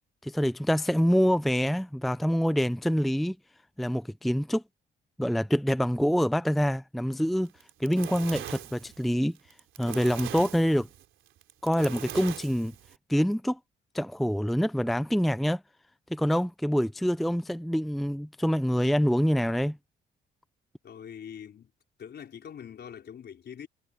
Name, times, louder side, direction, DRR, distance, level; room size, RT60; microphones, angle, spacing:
voice 1, 0.2-3.4 3.8-4.6 5.2-7.5 7.8-9.4 9.8-10.9 11.6-12.7 13.1-13.6 13.9-15.6 16.1-19.8, equal, ahead, 0.5 m, -26 dB
Fire, 7.5-13.0, right 12 dB, 80° right, 3.6 m, -41 dB
voice 2, 20.8-21.7 22.0-23.7, left 8 dB, 55° left, 4.6 m, -43 dB
cardioid pair, 90°, 20 cm